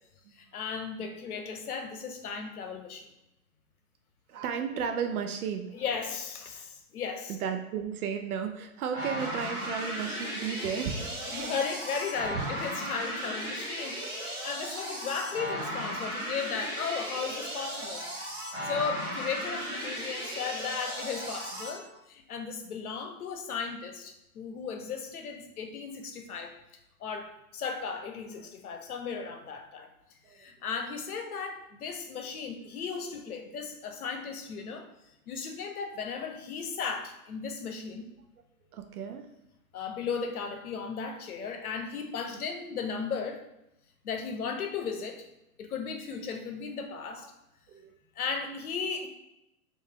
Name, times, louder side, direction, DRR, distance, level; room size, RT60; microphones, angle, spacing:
voice 1, 0.3-3.1 5.7-7.4 11.2-18.1 18.6-26.5 27.0-29.9 30.3-34.9 35.3-38.1 39.7-43.4 44.0-45.3 45.6-47.3 48.2-49.1, left 5 dB, 80° left, 5 dB, 0.8 m, -36 dB
voice 2, 4.3-5.8 7.3-11.6 12.3-12.5 21.9-22.0 28.4-28.5 30.2-30.5 38.7-39.3 47.1-47.3 47.7-48.0, right 7 dB, 75° right, 5 dB, 0.6 m, -34 dB
sound 1, 8.9-21.7, equal, 10° right, 0.4 m, -36 dB
3.2 x 2.6 x 3.6 m, 0.88 s
hypercardioid pair, 125°, 44 cm